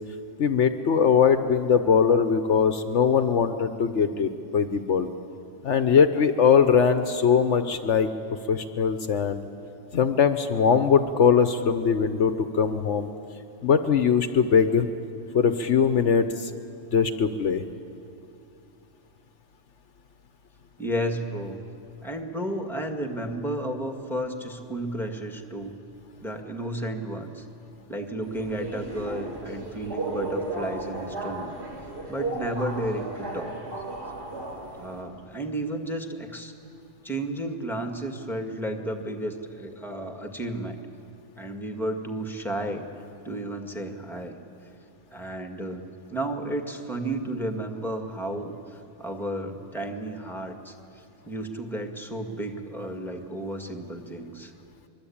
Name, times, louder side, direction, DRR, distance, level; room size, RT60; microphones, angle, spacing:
voice 1, 0.4-5.1 5.6-8.1 8.5-9.4 9.9-13.1 13.6-14.9 15.3-16.5 16.9-17.6, left 6 dB, 70° left, 9 dB, 1.2 m, -21 dB
voice 2, 20.8-21.6 22.0-25.8 26.2-27.5 27.9-31.5 32.1-33.6 34.7-36.5 37.0-40.8 41.4-42.9 43.2-44.4 45.1-45.8 46.1-54.5, right 1 dB, ahead, 4 dB, 1.9 m, -32 dB
Subway metro underground, 28.2-35.0, right 2 dB, 55° right, 3.5 m, -34 dB
24.0 x 23.0 x 8.7 m, 2.6 s
omnidirectional pair, 1.3 m